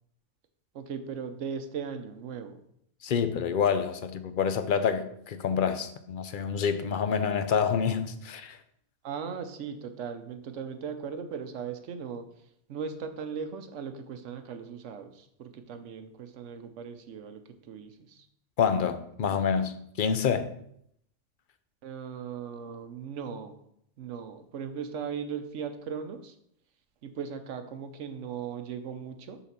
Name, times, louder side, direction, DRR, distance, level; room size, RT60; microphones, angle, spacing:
voice 1, 0.7-2.6 9.0-12.3 12.7-18.3 21.8-23.6 24.0-26.4 27.0-29.4, right 6 dB, 90° right, 1.1 m, -38 dB
voice 2, 3.0-8.6 18.6-20.5, left 7 dB, 55° left, 0.7 m, -27 dB
7.1 x 4.0 x 5.9 m
omnidirectional pair, 1.2 m